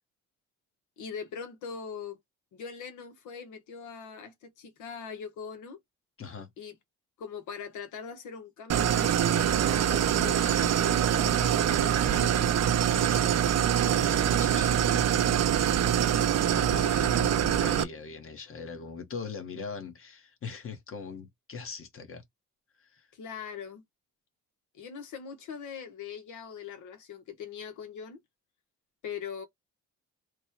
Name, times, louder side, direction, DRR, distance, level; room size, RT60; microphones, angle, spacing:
voice 1, 1.0-2.2 2.5-5.8 6.6-6.7 7.2-10.4 10.8-12.6 23.1-23.8 24.7-28.2 29.0-29.4, left 6 dB, 80° left, 1.1 m, -41 dB
voice 2, 6.2-6.5 10.3-11.0 12.9-15.3 16.5-22.2 22.8-23.1, left 5 dB, 45° left, 1.1 m, -42 dB
Idling, 8.7-17.8, right 9 dB, 60° right, 0.6 m, -24 dB
3.2 x 2.2 x 4.3 m
cardioid pair, 90°, 30 cm